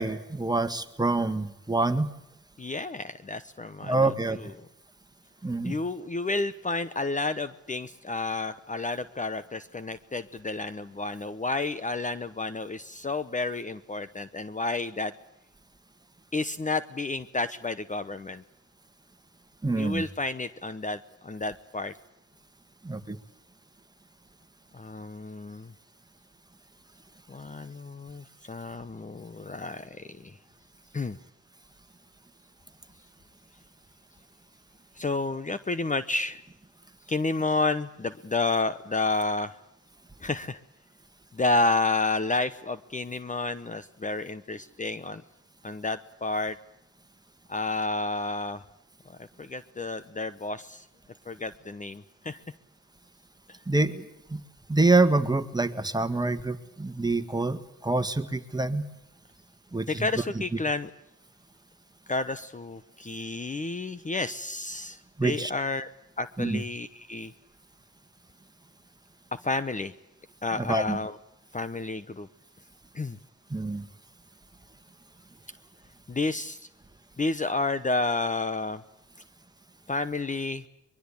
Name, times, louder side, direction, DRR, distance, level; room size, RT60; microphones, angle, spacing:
voice 1, 0.0-2.1 3.8-4.4 5.4-5.8 19.6-20.0 22.8-23.2 53.7-54.0 54.3-54.4 54.7-58.9 59.7-60.1 65.2-65.5 66.4-66.6 70.6-71.0 73.5-73.9, right 2 dB, 15° right, 9 dB, 1.8 m, -26 dB
voice 2, 2.6-4.5 5.6-15.1 16.3-18.4 19.7-21.9 24.7-25.7 27.3-30.4 30.9-31.2 34.9-36.4 37.1-39.6 40.2-40.6 41.3-45.2 45.6-46.6 47.5-48.6 49.2-50.9 51.3-52.4 59.9-60.9 62.1-65.9 66.2-67.3 69.3-69.9 70.4-71.2 71.5-72.3 72.9-73.2 76.1-76.7 77.2-78.8 79.9-80.6, left 3 dB, 25° left, 13 dB, 1.0 m, -30 dB
23.5 x 22.5 x 8.5 m, 0.83 s
cardioid pair, 90°, 30 cm